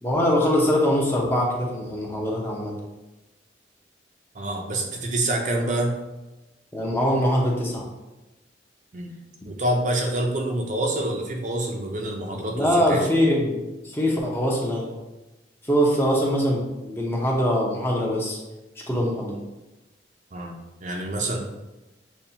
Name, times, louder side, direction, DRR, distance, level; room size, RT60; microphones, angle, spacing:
voice 1, 0.0-2.7 6.7-7.8 12.5-14.9 15.7-18.4 18.9-19.4, equal, 15° left, -2 dB, 0.7 m, -23 dB
voice 2, 4.3-6.0 8.9-9.2 9.4-13.1 20.3-20.5 20.8-21.4, right 1 dB, 45° right, 2 dB, 0.6 m, -27 dB
6.9 x 2.3 x 2.8 m, 1.0 s
head